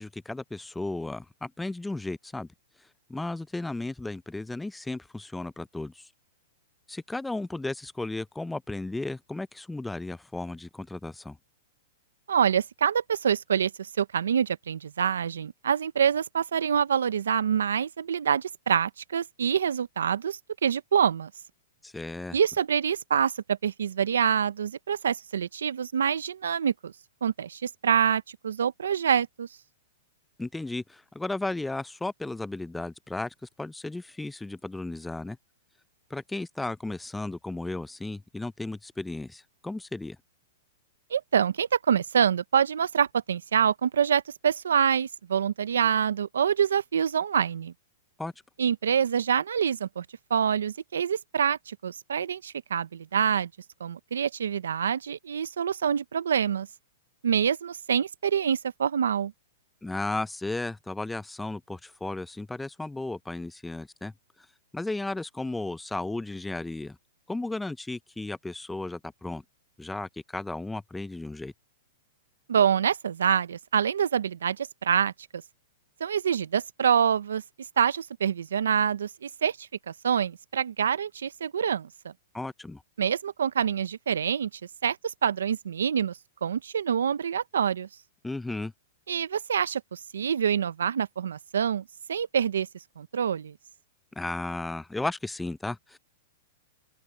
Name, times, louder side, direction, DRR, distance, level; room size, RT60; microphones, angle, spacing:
voice 1, 0.0-2.5 3.1-6.0 6.9-11.4 21.8-22.4 30.4-35.4 36.1-40.2 48.2-48.3 59.8-64.1 64.7-67.0 67.3-69.4 69.8-71.5 82.3-82.8 88.2-88.7 94.2-96.0, left 2 dB, 5° left, 0.7 m, -34 dB
voice 2, 12.3-21.3 22.3-26.9 27.2-29.5 41.1-47.7 48.6-50.0 50.3-53.5 53.8-56.7 57.2-59.3 72.5-75.1 76.0-77.4 77.8-79.7 80.0-82.1 83.0-84.5 84.8-85.0 85.2-87.9 89.1-92.7 93.0-93.5, right 8 dB, 85° right, 1.0 m, -26 dB
open air
hypercardioid pair, 125°, 0 cm